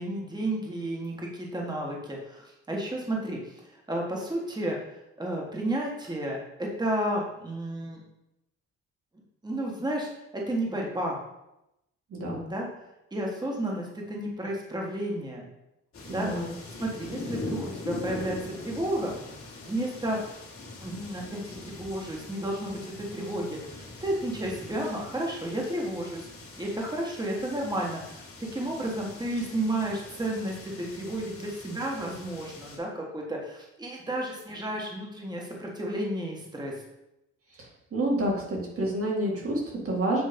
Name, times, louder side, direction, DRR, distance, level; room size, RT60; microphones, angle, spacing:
voice 1, 0.0-3.6 3.9-4.8 5.2-8.0 9.4-11.2 12.5-12.7 13.1-15.5 16.1-16.3 16.8-19.1 19.6-20.2 20.8-26.3 26.6-28.3 28.5-36.8, right 1 dB, 15° right, -1 dB, 1.5 m, -32 dB
voice 2, 12.1-12.4 16.1-16.5 37.9-40.2, right 1 dB, 50° right, -1 dB, 2.2 m, -28 dB
sound 1, 15.9-32.8, left 2 dB, 45° left, 2.0 m, -42 dB
8.1 x 3.1 x 5.2 m, 0.88 s
cardioid pair, 90°, 30 cm